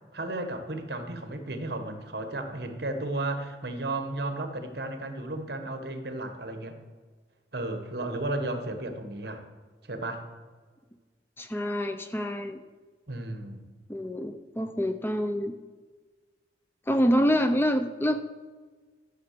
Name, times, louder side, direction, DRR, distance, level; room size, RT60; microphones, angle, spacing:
voice 1, 0.1-6.8 7.5-9.4 9.9-10.2 13.1-13.6, right 2 dB, 60° right, 7 dB, 1.4 m, -34 dB
voice 2, 11.4-12.6 13.9-15.5 16.9-18.2, equal, 10° left, 8 dB, 0.5 m, -26 dB
12.0 x 6.7 x 6.8 m, 1.4 s
head